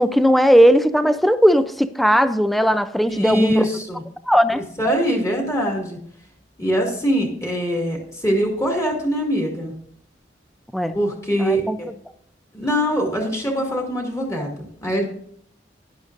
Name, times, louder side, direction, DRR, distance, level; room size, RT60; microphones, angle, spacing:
voice 1, 0.0-3.6 4.3-4.6 10.7-10.9 11.4-11.8, equal, ahead, 12 dB, 0.4 m, -17 dB
voice 2, 3.1-4.0 4.5-6.0 6.6-9.7 10.9-11.9 12.5-14.6 14.8-15.0, equal, 15° left, 0 dB, 2.2 m, -23 dB
12.5 x 10.5 x 2.6 m, 0.65 s
head